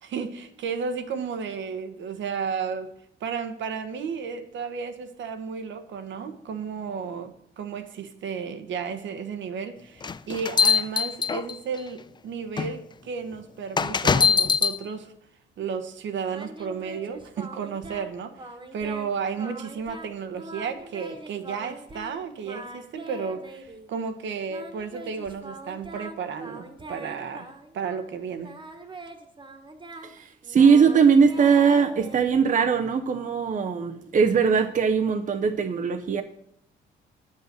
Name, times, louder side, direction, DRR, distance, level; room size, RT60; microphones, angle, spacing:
voice 1, 0.0-2.9 3.2-15.1 15.6-28.5, right 6 dB, 70° right, 1.1 m, -33 dB
sound 1, 10.0-11.8 12.6-12.7 13.8-14.8, left 5 dB, 25° left, 0.4 m, -22 dB
Singing, 16.3-18.1 18.4-19.1 19.4-22.1 22.4-23.9 24.5-28.1 28.4-32.8, right 1 dB, 25° right, 1.4 m, -42 dB
voice 2, 30.0-36.2, right 6 dB, 40° right, 0.7 m, -20 dB
9.4 x 5.6 x 8.0 m
cardioid pair, 90°, 20 cm